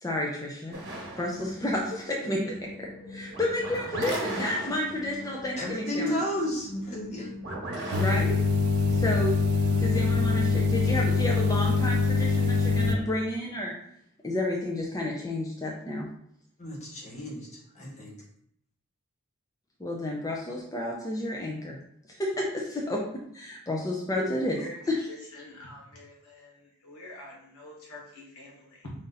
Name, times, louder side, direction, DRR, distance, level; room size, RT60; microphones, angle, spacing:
voice 1, 0.0-0.8 1.2-6.1 8.0-8.4 8.9-9.4 9.7-13.7 14.2-16.1 19.8-21.8 22.1-23.1 23.3-24.6 24.9-25.1, left 1 dB, 15° left, -1 dB, 0.5 m, -31 dB
sound 1, 0.7-8.3, right 1 dB, 55° right, 1.2 m, -38 dB
voice 2, 5.6-7.3 16.6-18.1, equal, 30° left, -3 dB, 1.2 m, -33 dB
sound 2, 7.9-13.0, left 4 dB, 90° right, 0.5 m, -24 dB
voice 3, 25.1-26.5 26.8-28.9, left 2 dB, 85° left, -3 dB, 1.5 m, -43 dB
4.9 x 2.7 x 4.0 m, 0.70 s
head